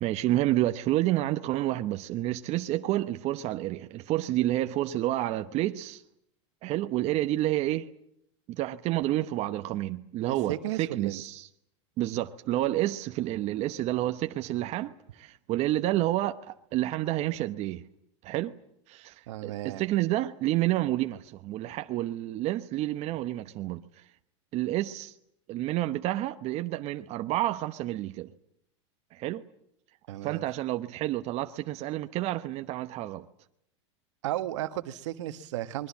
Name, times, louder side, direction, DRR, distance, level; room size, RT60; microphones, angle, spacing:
voice 1, 0.0-6.0 6.6-7.9 8.5-11.5 12.0-17.8 18.2-18.5 18.9-23.8 24.5-25.1 25.5-28.3 29.1-29.4 30.2-33.3, right 15 dB, 45° right, 1.0 m, -29 dB
voice 2, 10.5-11.2 19.3-19.8 30.1-30.4 34.2-35.9, right 14 dB, 70° right, 1.4 m, -34 dB
28.5 x 22.0 x 7.4 m
hypercardioid pair, 115°, 16 cm